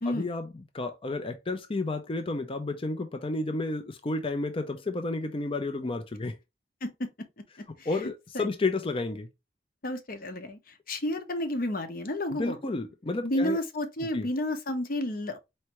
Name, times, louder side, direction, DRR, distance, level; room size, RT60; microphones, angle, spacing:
voice 1, 0.1-6.3 7.9-9.3 12.3-13.6 14.1-14.3, left 2 dB, 30° left, 0.5 m, -31 dB
voice 2, 9.8-10.6 10.9-12.6 13.2-15.4, left 1 dB, 55° left, 0.9 m, -31 dB
4.5 x 3.2 x 3.0 m
head